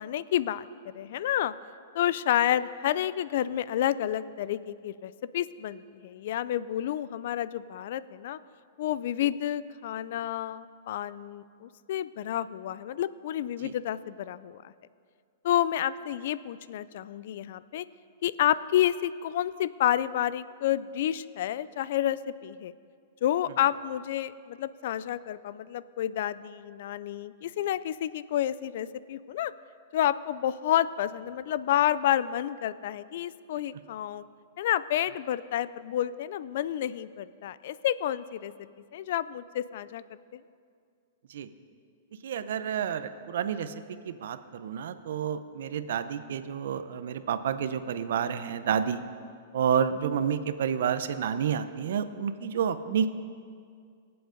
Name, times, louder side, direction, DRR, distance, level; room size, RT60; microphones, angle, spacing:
voice 1, 0.0-1.5 1.9-8.4 8.8-14.7 15.4-17.8 18.2-22.7 23.2-29.5 29.9-34.2 34.6-38.5 38.9-40.0 40.3-40.4, left 11 dB, 60° left, 17 dB, 0.4 m, -29 dB
voice 2, 42.2-43.7 44.0-49.0 49.5-53.1, right 8 dB, 70° right, 12 dB, 0.7 m, -29 dB
23.5 x 7.8 x 3.9 m, 2.2 s
hypercardioid pair, 145°, 0 cm